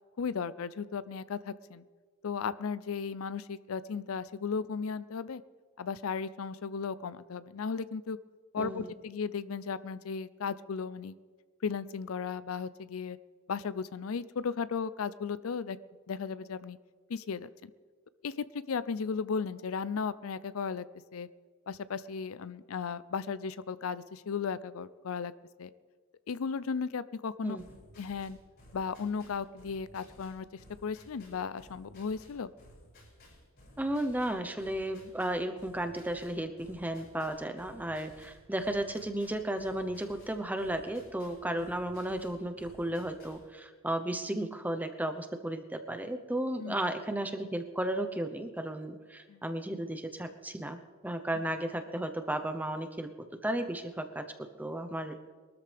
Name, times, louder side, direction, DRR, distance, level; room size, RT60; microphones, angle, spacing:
voice 1, 0.2-1.8 2.2-5.4 5.8-8.2 8.5-11.1 11.6-13.2 13.5-15.8 16.1-16.8 17.1-17.7 18.2-20.9 21.1-21.3 21.7-25.3 25.6-25.7 26.3-27.6 28.0-28.4 28.7-30.5 30.8-32.5 46.6-46.9 49.3-49.4, left 5 dB, 85° left, 16 dB, 0.5 m, -35 dB
voice 2, 8.6-8.9 27.4-27.6 33.8-53.1 53.4-54.3 54.6-55.2, right 1 dB, 10° right, 6 dB, 0.8 m, -34 dB
sound 1, 27.6-43.5, equal, 55° left, 5.6 m, -57 dB
22.5 x 13.0 x 3.4 m, 1.5 s
head